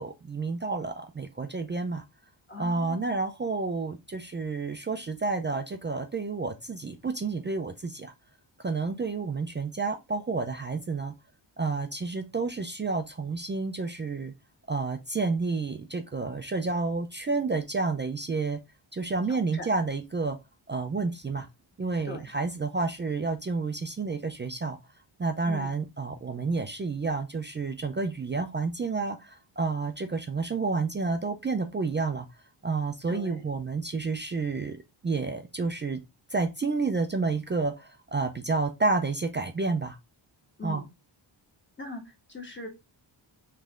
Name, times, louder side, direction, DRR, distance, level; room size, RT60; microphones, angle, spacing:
voice 1, 0.0-2.0 2.6-8.1 8.6-11.1 11.6-14.3 14.7-18.6 18.9-20.4 20.7-21.5 21.8-24.8 25.2-32.3 32.6-34.8 35.0-36.0 36.3-40.0 40.6-40.8, right 3 dB, 25° right, 0.4 m, -30 dB
voice 2, 2.5-3.1 19.3-19.7 22.0-22.3 25.5-25.7 33.1-33.5 40.6-40.9 41.8-42.7, left 3 dB, 25° left, 1.3 m, -40 dB
3.5 x 3.2 x 3.5 m
wide cardioid pair, 120°, 48 cm